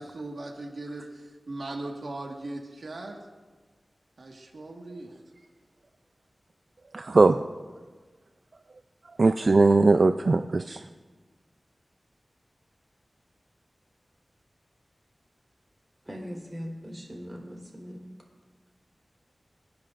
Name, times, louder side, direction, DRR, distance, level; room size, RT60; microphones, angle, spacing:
voice 1, 0.0-3.2 4.2-5.1, right 2 dB, 80° right, 0 dB, 1.7 m, -38 dB
voice 2, 6.9-7.4 9.2-10.8, right 3 dB, 60° right, 8 dB, 0.4 m, -20 dB
voice 3, 16.1-18.1, equal, 20° right, -1 dB, 3.9 m, -40 dB
26.0 x 10.5 x 2.5 m, 1.3 s
wide cardioid pair, 65°, 0 cm